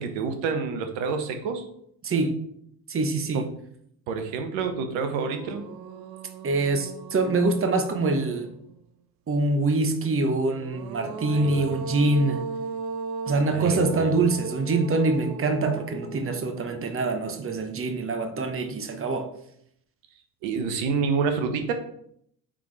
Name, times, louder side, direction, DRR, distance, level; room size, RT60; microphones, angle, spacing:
voice 1, 0.0-1.7 3.3-3.5 4.1-5.7 11.3-11.7 13.5-14.2 20.4-21.7, right 5 dB, 65° right, 1.1 m, -28 dB
voice 2, 2.0-2.4 2.9-3.5 6.4-8.5 9.3-12.4 13.3-19.3, right 3 dB, 25° right, 1.1 m, -25 dB
sound 1, 4.6-4.7 5.1-8.7 10.4-17.7, right 4 dB, 85° right, 0.6 m, -38 dB
8.6 x 3.7 x 3.3 m
hypercardioid pair, 55°, 49 cm